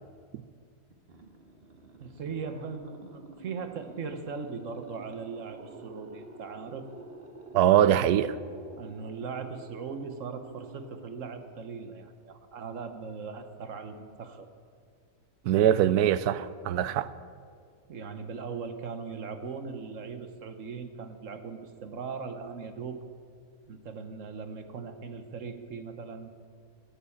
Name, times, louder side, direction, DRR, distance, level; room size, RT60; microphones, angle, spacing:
sound 1, 0.9-12.0, right 2 dB, 40° right, 1.5 m, -49 dB
voice 1, 2.0-6.9 8.8-14.5 17.9-23.0 23.7-26.3, right 5 dB, 55° right, 1.4 m, -39 dB
voice 2, 7.5-8.3 15.5-17.1, right 11 dB, 85° right, 1.1 m, -22 dB
14.0 x 10.5 x 8.5 m
omnidirectional pair, 1.6 m